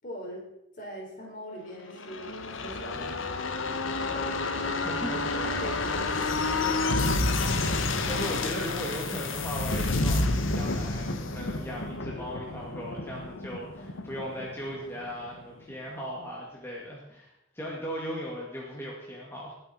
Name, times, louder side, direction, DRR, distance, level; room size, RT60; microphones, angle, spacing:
voice 1, 0.0-0.4 0.7-2.3 2.6-3.5 4.0-4.3 5.1-6.7, equal, 45° left, -2 dB, 4.8 m, -42 dB
sound 1, 1.9-15.4 15.7-15.8, left 2 dB, 80° left, 1.3 m, -30 dB
voice 2, 4.1-4.5 4.8-5.5 7.7-19.5, equal, 10° left, -4 dB, 2.2 m, -38 dB
20.5 x 7.9 x 4.5 m, 0.82 s
head